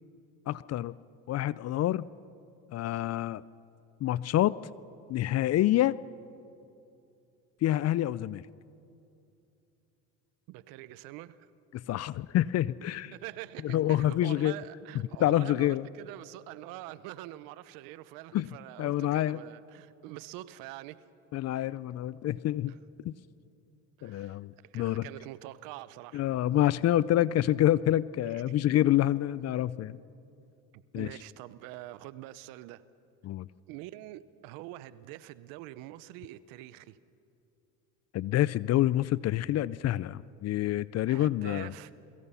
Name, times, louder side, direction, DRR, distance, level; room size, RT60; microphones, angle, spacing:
voice 1, 0.5-0.9 1.3-2.1 2.7-3.4 4.0-4.6 5.1-6.0 7.6-8.5 11.7-13.1 13.6-14.5 15.2-15.9 18.3-18.5 18.8-19.4 21.3-22.7 23.0-23.1 24.0-25.1 26.1-30.0 30.9-31.1 33.2-33.5 38.1-41.7, left 13 dB, 50° left, 0.5 m, -27 dB
voice 2, 10.5-11.5 13.1-21.0 22.7-22.8 24.0-26.3 28.3-28.5 31.0-32.8 33.7-37.0 41.1-41.9, right 16 dB, 80° right, 0.9 m, -45 dB
29.0 x 22.5 x 5.7 m
supercardioid pair, 90°, 34 cm